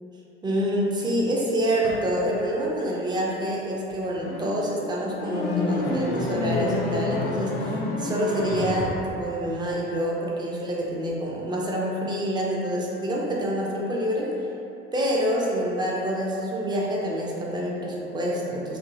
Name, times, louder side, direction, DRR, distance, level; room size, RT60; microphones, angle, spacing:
voice 1, 0.4-14.3 14.9-18.8, equal, 15° right, -4 dB, 0.4 m, -27 dB
sound 1, 1.8-2.1 3.9-9.1, left 2 dB, 55° left, 0.4 m, -28 dB
2.5 x 2.4 x 2.5 m, 2.8 s
figure-of-eight pair, 60°, 33 cm